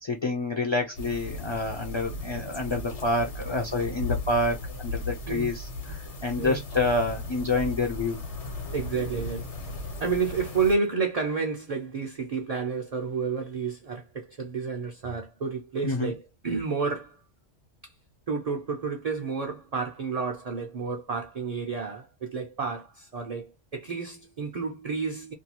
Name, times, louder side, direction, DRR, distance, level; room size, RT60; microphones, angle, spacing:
voice 1, 0.0-8.2 15.8-16.1, left 2 dB, 35° left, 0.4 m, -28 dB
sound 1, 0.9-10.8, left 2 dB, 70° left, 1.2 m, -36 dB
voice 2, 8.7-9.5 9.8-17.2 17.8-17.9 18.3-25.3, right 5 dB, 50° right, 0.5 m, -30 dB
2.6 x 2.3 x 2.8 m
omnidirectional pair, 1.2 m